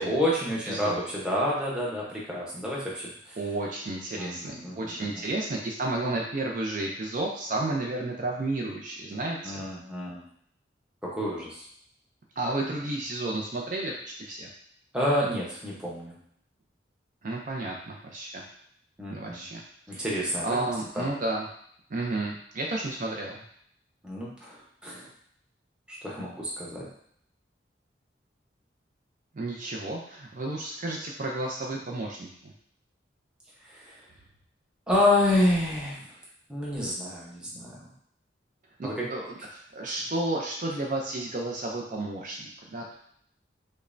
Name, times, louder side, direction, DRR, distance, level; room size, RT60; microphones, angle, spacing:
voice 1, 0.0-3.4 4.1-5.3 9.4-10.2 11.0-11.6 14.9-16.1 19.0-19.4 19.9-20.6 20.9-21.1 24.0-25.1 25.9-26.9 33.6-34.0 34.9-36.2 36.5-37.8 38.8-39.1, left 1 dB, 5° right, -6 dB, 0.8 m, -29 dB
voice 2, 0.7-1.0 3.4-9.7 12.4-14.5 17.2-18.4 19.1-19.6 19.9-20.1 20.4-21.5 21.9-23.4 29.3-32.5 38.8-42.9, right 2 dB, 45° right, -1 dB, 0.4 m, -32 dB
5.2 x 2.1 x 2.5 m, 0.66 s
head